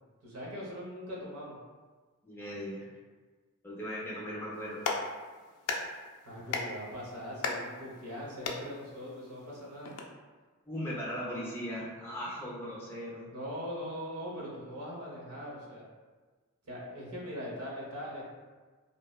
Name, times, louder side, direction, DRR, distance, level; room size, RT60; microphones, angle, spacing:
voice 1, 0.2-1.6 6.2-9.9 13.3-15.9 16.6-18.2, equal, 80° right, -5 dB, 0.7 m, -41 dB
voice 2, 2.2-2.9 3.6-4.9 10.7-13.3, equal, 10° left, -7 dB, 0.4 m, -38 dB
Clapping, 4.5-10.0, left 4 dB, 85° left, 0.3 m, -38 dB
2.7 x 2.0 x 2.3 m, 1.4 s
head